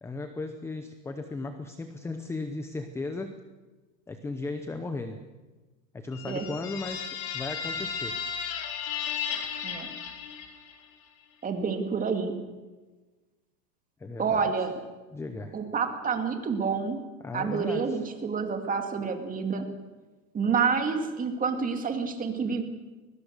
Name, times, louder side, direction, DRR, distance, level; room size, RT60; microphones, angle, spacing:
voice 1, 0.0-3.4 4.1-5.2 5.9-8.2 14.0-14.7 15.1-15.6 17.2-18.0, left 3 dB, 5° left, 8 dB, 0.7 m, -36 dB
sound 1, 6.1-10.8, left 7 dB, 45° left, 4.0 m, -34 dB
voice 2, 11.4-12.3 14.2-14.8 15.5-17.0 17.3-19.7 20.3-22.6, right 5 dB, 15° right, 5 dB, 2.3 m, -28 dB
21.0 x 20.5 x 6.7 m, 1.2 s
supercardioid pair, 140°, 50 cm